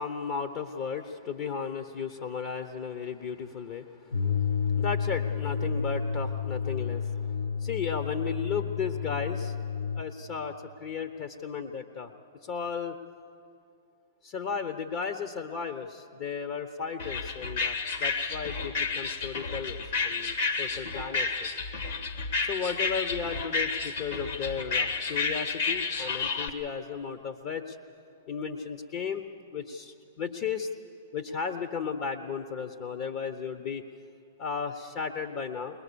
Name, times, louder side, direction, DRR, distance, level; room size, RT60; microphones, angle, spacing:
voice 1, 0.0-7.2 7.6-9.5 10.0-10.5 10.8-12.1 12.4-13.0 14.2-19.8 20.0-21.5 22.4-27.8 28.3-30.7 31.1-33.9 34.4-35.8, left 6 dB, 45° left, 7 dB, 1.0 m, -35 dB
sound 1, 4.1-10.1, left 6 dB, 75° left, 0.8 m, -30 dB
sound 2, 17.0-26.5, left 4 dB, 60° left, 1.5 m, -31 dB
21.0 x 20.5 x 7.0 m, 2.5 s
hypercardioid pair, 115°, 0 cm